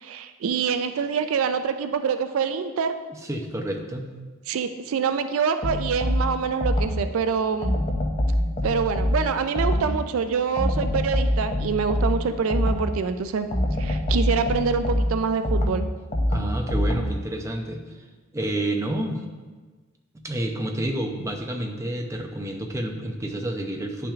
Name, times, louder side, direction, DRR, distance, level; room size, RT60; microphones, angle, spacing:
voice 1, 0.0-2.9 4.5-7.8 8.6-13.5 13.8-15.8, right 6 dB, 70° right, 9 dB, 0.4 m, -25 dB
voice 2, 3.1-4.1 16.3-17.8 18.3-19.2 20.2-24.1, right 1 dB, 15° right, 2 dB, 0.6 m, -29 dB
sound 1, 5.6-7.2 7.6-10.1 10.6-13.0 13.5-17.3, left 1 dB, 30° left, 0.6 m, -25 dB
9.9 x 5.8 x 2.4 m, 1.4 s
head